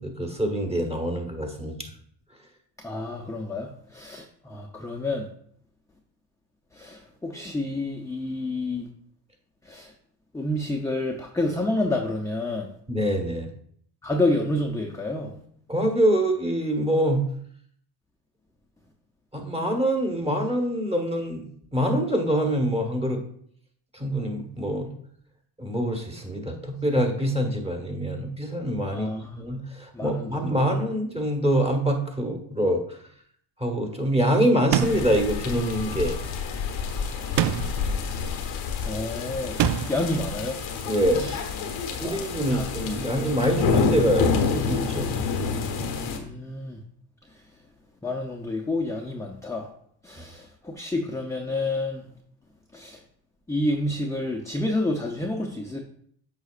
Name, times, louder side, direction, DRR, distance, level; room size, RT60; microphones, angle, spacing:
voice 1, 0.0-1.8 12.9-13.5 15.7-17.2 19.3-23.2 23.9-24.9 25.6-32.8 33.6-36.2 40.8-41.3 42.0-45.1, equal, 15° right, 3 dB, 1.4 m, -25 dB
voice 2, 2.8-5.3 6.8-8.9 9.7-9.9 10.3-12.7 14.0-15.3 28.9-29.3 29.9-30.7 38.9-40.6 41.2-41.4 42.0-42.8 46.0-46.8 48.0-49.7 50.0-52.0 52.7-53.0 53.5-55.8, left 2 dB, 5° left, 1 dB, 0.7 m, -29 dB
sound 1, 34.7-35.2 37.4-37.9 39.6-40.1, right 13 dB, 60° right, 0.5 m, -25 dB
sound 2, 34.8-46.2, left 5 dB, 90° left, 1.1 m, -28 dB
8.0 x 5.6 x 2.5 m, 0.64 s
cardioid pair, 80°, 48 cm